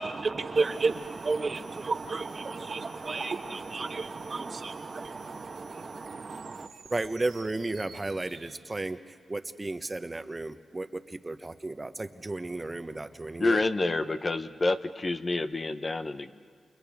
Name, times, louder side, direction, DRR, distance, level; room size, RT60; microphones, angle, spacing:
voice 1, 0.0-6.7, right 3 dB, 50° right, 6 dB, 1.3 m, -32 dB
sound 1, 0.5-8.5, right 5 dB, 85° right, 2.4 m, -53 dB
voice 2, 6.9-13.6, right 2 dB, 30° right, 9 dB, 1.0 m, -34 dB
voice 3, 13.4-16.4, left 2 dB, 40° left, 9 dB, 0.9 m, -28 dB
29.5 x 28.0 x 3.6 m, 2.1 s
cardioid pair, 50°, 0 cm